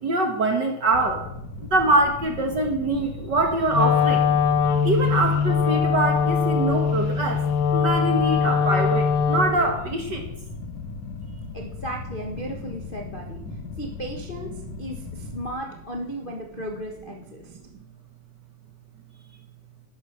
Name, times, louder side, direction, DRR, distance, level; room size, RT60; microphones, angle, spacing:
voice 1, 0.0-1.2 1.6-4.2 4.8-7.5 7.7-10.3, right 2 dB, 45° right, 4 dB, 1.6 m, -24 dB
sound 1, 0.9-15.5, left 4 dB, 85° left, 3.1 m, -37 dB
Wind instrument woodwind instrument, 3.7-9.7, left 6 dB, 65° left, 2.1 m, -22 dB
voice 2, 11.5-13.4 13.8-14.5 14.8-17.5, equal, 35° left, 0 dB, 0.8 m, -35 dB
12.0 x 10.5 x 6.6 m, 0.82 s
omnidirectional pair, 3.4 m